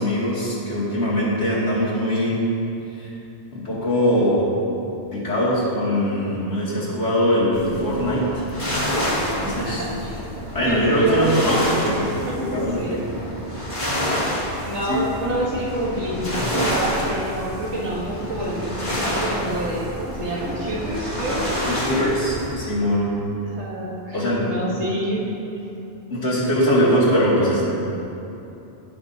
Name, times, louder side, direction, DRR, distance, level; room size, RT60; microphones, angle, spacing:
voice 1, 0.0-2.4 2.9-3.1 3.5-4.4 5.1-8.5 9.0-9.9 10.5-12.0 12.4-13.0 14.9-15.0 21.7-23.1 24.1-24.4 26.1-27.7, equal, 80° left, -9 dB, 2.8 m, -22 dB
sound 1, 7.5-22.5, left 1 dB, 40° left, 1.8 m, -28 dB
voice 2, 9.6-10.2 10.6-13.1 14.7-21.6 23.4-25.3, right 1 dB, 80° right, -4 dB, 1.6 m, -27 dB
16.5 x 6.0 x 2.7 m, 2.9 s
omnidirectional pair, 1.2 m